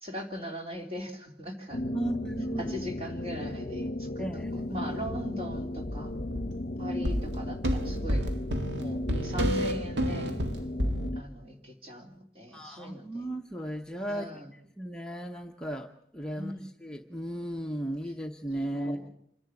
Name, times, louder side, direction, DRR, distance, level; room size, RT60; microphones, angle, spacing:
voice 1, 0.0-2.2 2.6-4.4 4.7-6.1 6.8-8.3 8.7-10.3 11.1-13.3 14.0-14.5 16.4-16.7 18.7-19.1, equal, 35° right, 2 dB, 3.2 m, -39 dB
sound 1, 1.7-11.2, left 1 dB, 50° left, 0.8 m, -36 dB
voice 2, 1.9-2.8 4.2-4.9 12.5-16.5 16.8-19.1, right 1 dB, 5° left, 2 dB, 0.8 m, -36 dB
sound 2, 5.1-5.2 5.5-6.6 7.0-11.1, equal, 80° right, 1.6 m, -30 dB
27.0 x 11.0 x 9.7 m, 0.71 s
head